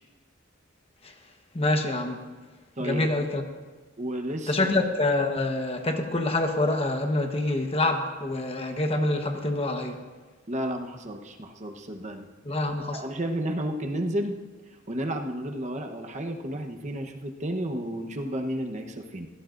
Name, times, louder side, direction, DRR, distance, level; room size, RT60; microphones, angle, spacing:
voice 1, 1.5-2.2 2.8-3.4 4.5-10.0 12.4-13.0, left 2 dB, 30° left, 4 dB, 1.2 m, -26 dB
voice 2, 2.8-3.1 4.0-4.6 10.5-12.6 12.9-14.4 14.9-19.3, right 1 dB, 35° right, 4 dB, 1.1 m, -32 dB
23.0 x 17.0 x 2.6 m, 1.4 s
head